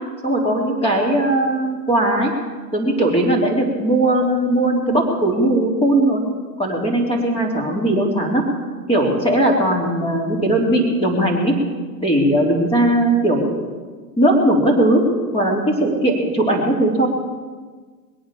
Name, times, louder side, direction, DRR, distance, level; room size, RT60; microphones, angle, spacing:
voice 1, 0.2-2.3 2.7-6.2 6.6-8.4 8.9-11.5 12.0-13.7 14.2-15.0 15.3-17.1, right 1 dB, 10° left, -1 dB, 3.7 m, -18 dB
22.0 x 8.7 x 7.1 m, 1.4 s
hypercardioid pair, 140°, 50 cm